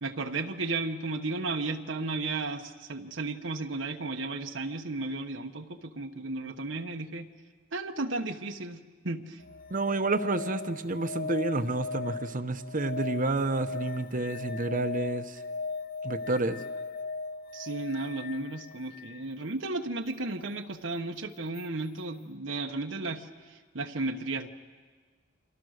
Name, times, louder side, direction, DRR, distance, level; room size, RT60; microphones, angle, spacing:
voice 1, 0.0-7.3 7.7-9.4 17.5-23.3 23.7-24.5, right 3 dB, 70° right, 4 dB, 1.2 m, -34 dB
sound 1, 9.4-19.2 21.5-21.6, left 4 dB, 50° left, 0.7 m, -38 dB
voice 2, 9.7-15.3 16.0-16.6, right 2 dB, 45° right, 9 dB, 1.1 m, -29 dB
29.5 x 25.5 x 6.6 m, 1.5 s
head